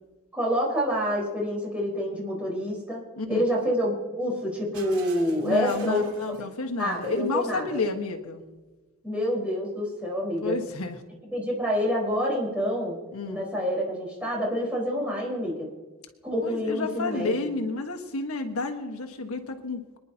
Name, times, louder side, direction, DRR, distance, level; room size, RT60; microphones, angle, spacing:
voice 1, 0.3-3.0 3.3-6.0 6.8-7.8 9.0-10.6 11.3-13.0 13.3-15.7 16.2-17.5, equal, 5° right, -4 dB, 4.4 m, -27 dB
voice 2, 3.2-3.5 5.4-8.4 10.4-11.0 13.1-13.5 16.4-20.0, left 3 dB, 80° left, 3 dB, 1.3 m, -31 dB
Shatter, 4.7-7.5, right 5 dB, 80° right, 2.8 m, -48 dB
26.5 x 10.5 x 2.8 m, 1.2 s
head